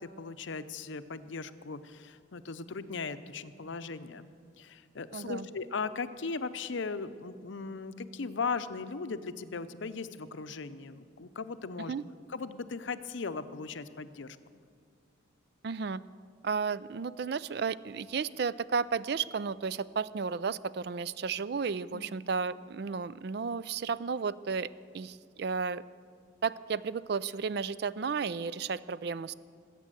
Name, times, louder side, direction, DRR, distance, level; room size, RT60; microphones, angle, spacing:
voice 1, 0.0-4.3 4.6-11.9 12.3-14.4 21.9-22.1, left 4 dB, 75° left, 12 dB, 0.6 m, -38 dB
voice 2, 5.1-5.5 11.8-12.0 15.6-16.0 16.4-24.7 24.9-25.8 26.4-29.3, right 5 dB, 55° right, 17 dB, 0.4 m, -33 dB
20.0 x 8.3 x 7.6 m, 2.3 s
head